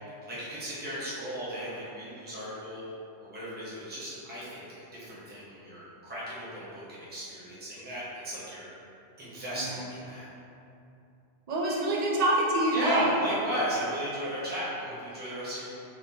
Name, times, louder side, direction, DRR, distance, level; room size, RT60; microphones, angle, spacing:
voice 1, 0.3-2.8 3.2-4.7 4.9-8.7 9.2-10.3 12.7-15.7, equal, 10° right, -10 dB, 0.8 m, -35 dB
voice 2, 9.5-9.9 11.5-13.1, right 1 dB, 45° right, -4 dB, 0.6 m, -26 dB
3.8 x 3.3 x 2.8 m, 2.7 s
omnidirectional pair, 1.2 m